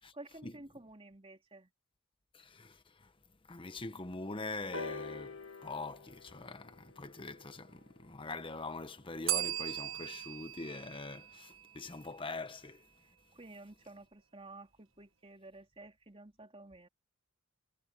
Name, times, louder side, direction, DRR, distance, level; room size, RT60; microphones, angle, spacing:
voice 1, 0.0-1.7 13.3-16.9, right 2 dB, 30° right, 3.1 m, -52 dB
voice 2, 2.3-3.1 3.5-12.9, left 3 dB, 25° left, 1.1 m, -43 dB
sound 1, 4.7-8.6 9.5-9.6, left 3 dB, 80° left, 1.9 m, -46 dB
Bell, 9.3-12.1, right 13 dB, 70° right, 1.5 m, -38 dB
head